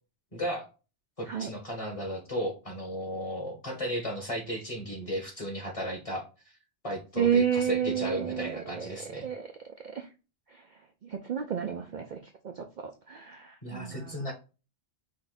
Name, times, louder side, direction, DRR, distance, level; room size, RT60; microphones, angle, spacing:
voice 1, 0.3-0.7 1.2-6.2 6.8-9.3 13.6-14.3, equal, 30° left, 2 dB, 1.3 m, -34 dB
voice 2, 7.2-9.5 9.8-10.1 10.5-14.3, right 8 dB, 55° right, 4 dB, 0.5 m, -31 dB
5.2 x 2.6 x 3.9 m, 0.32 s
omnidirectional pair, 1.2 m